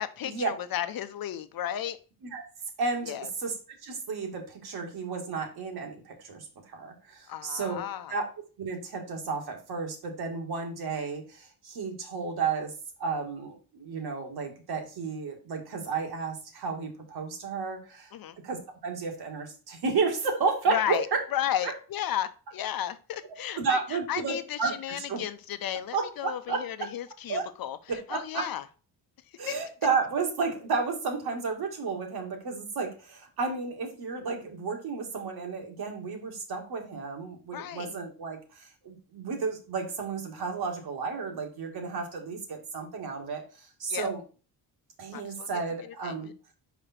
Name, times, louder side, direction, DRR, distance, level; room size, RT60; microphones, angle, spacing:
voice 1, 0.0-2.0 3.0-3.3 7.3-8.1 18.1-18.4 20.7-21.1 21.3-28.6 29.3-29.5 37.5-37.9 43.9-44.1 45.1-45.5 46.0-46.3, left 11 dB, 60° left, 0.8 m, -34 dB
voice 2, 2.8-3.5 3.8-7.8 8.1-8.3 8.6-12.7 13.0-18.1 18.4-21.2 21.6-21.7 23.6-25.2 25.9-26.9 27.3-27.5 27.9-28.5 29.4-44.2 45.0-46.3, right 4 dB, 70° right, 2.1 m, -32 dB
5.1 x 5.0 x 4.3 m
cardioid pair, 85°, 39 cm